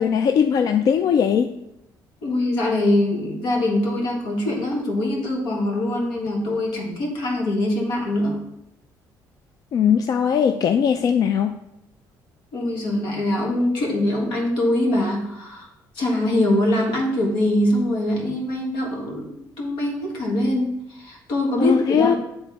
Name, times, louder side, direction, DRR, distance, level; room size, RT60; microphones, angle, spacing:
voice 1, 0.0-1.6 9.7-11.6 21.6-22.2, left 7 dB, 50° left, 7 dB, 0.3 m, -19 dB
voice 2, 2.2-8.4 12.5-15.7 15.9-22.2, left 1 dB, 85° left, 0 dB, 1.6 m, -23 dB
8.4 x 3.4 x 4.1 m, 0.83 s
cardioid pair, 115°, 8 cm